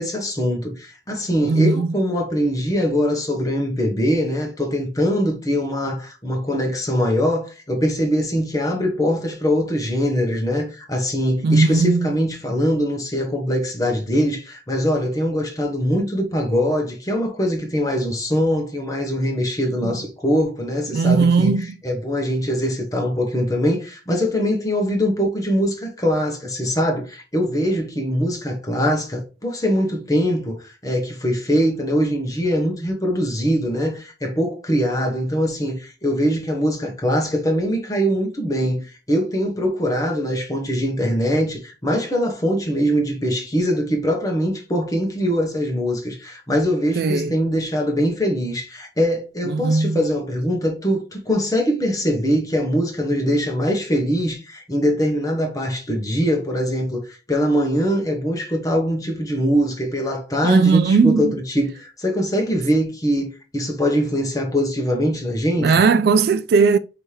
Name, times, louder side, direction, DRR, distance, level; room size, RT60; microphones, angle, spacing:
voice 1, 0.0-21.5 21.8-65.8, equal, 20° left, 1.1 m, -22 dB
voice 2, 1.4-1.9 11.4-12.1 19.8-19.9 20.9-21.7 47.0-47.3 49.5-50.0 60.4-61.4 65.6-66.8, right 4 dB, 60° right, 0.3 m, -17 dB
5.5 x 2.9 x 3.2 m
head